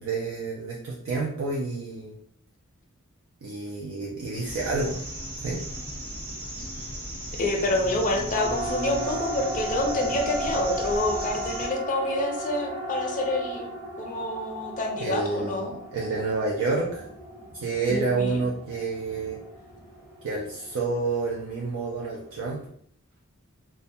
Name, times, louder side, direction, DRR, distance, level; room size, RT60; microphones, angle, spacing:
voice 1, 0.0-2.2 3.4-5.0 5.4-5.6 15.0-17.0 17.6-19.4 20.2-22.6, right 3 dB, 65° right, -2 dB, 0.4 m, -29 dB
sound 1, 4.4-11.7, equal, 40° right, 1.0 m, -36 dB
voice 2, 7.4-13.7 14.0-15.7 17.9-18.4, left 1 dB, 40° left, 2 dB, 0.5 m, -27 dB
Siren, 8.4-22.7, right 1 dB, 10° right, 0.6 m, -36 dB
2.2 x 2.1 x 2.6 m, 0.65 s
head